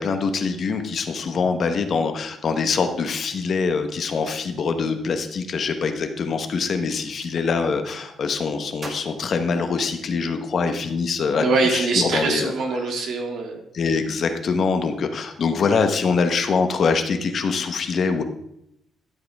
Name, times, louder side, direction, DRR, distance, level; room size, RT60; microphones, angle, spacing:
voice 1, 0.0-12.5 13.7-18.2, left 5 dB, 50° left, 7 dB, 1.1 m, -24 dB
Gunshot gunfire, 6.9-7.4 8.8-10.2, right 2 dB, 30° right, 2.0 m, -42 dB
voice 2, 11.4-13.6, right 3 dB, 70° right, 2 dB, 2.3 m, -23 dB
12.5 x 7.8 x 3.6 m, 0.78 s
cardioid pair, 130°, 0 cm